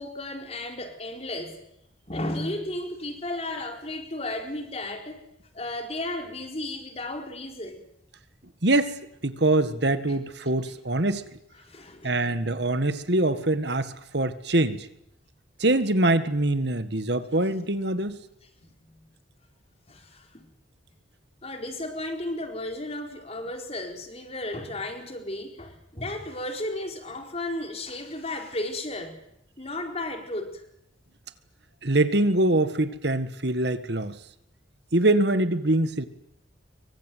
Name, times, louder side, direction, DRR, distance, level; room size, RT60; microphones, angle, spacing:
voice 1, 0.0-1.6 2.1-5.3 5.5-7.8 10.1-10.2 11.6-12.5 18.6-19.1 19.9-20.5 21.4-29.2 29.6-30.7, left 1 dB, 30° left, 5 dB, 4.2 m, -34 dB
voice 2, 8.6-8.9 9.2-11.2 12.0-14.9 15.6-18.2 31.8-34.2 34.9-36.1, right 2 dB, 60° right, 12 dB, 1.7 m, -24 dB
25.0 x 24.0 x 9.3 m, 0.77 s
head